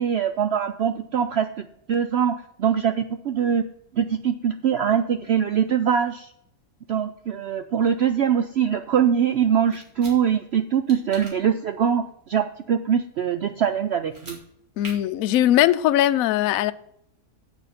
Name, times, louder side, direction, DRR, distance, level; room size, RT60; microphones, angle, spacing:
voice 1, 0.0-3.6 3.9-6.3 6.9-14.4, right 8 dB, 85° right, 0.5 m, -23 dB
sound 1, 9.7-10.2 10.9-11.3 14.0-14.4 14.8-14.9, right 2 dB, 55° right, 2.8 m, -40 dB
voice 2, 14.8-16.7, left 12 dB, 70° left, 0.9 m, -20 dB
8.0 x 6.7 x 5.7 m
omnidirectional pair, 1.7 m